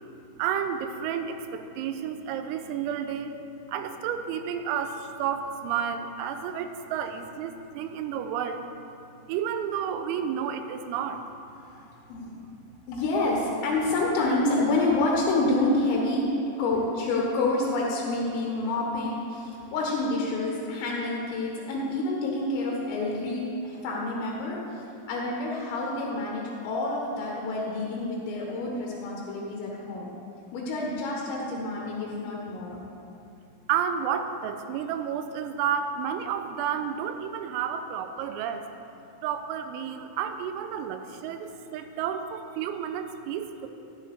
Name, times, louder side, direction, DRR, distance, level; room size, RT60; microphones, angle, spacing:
voice 1, 0.4-3.3 3.7-8.7 9.3-11.2 33.7-38.7 39.2-43.7, right 8 dB, 90° right, 8 dB, 3.3 m, -31 dB
voice 2, 11.6-12.3 12.9-16.2 16.6-24.6 25.1-30.1 30.5-32.8, left 2 dB, 80° left, -3 dB, 3.9 m, -28 dB
14.5 x 10.0 x 3.5 m, 2.7 s
omnidirectional pair, 5.9 m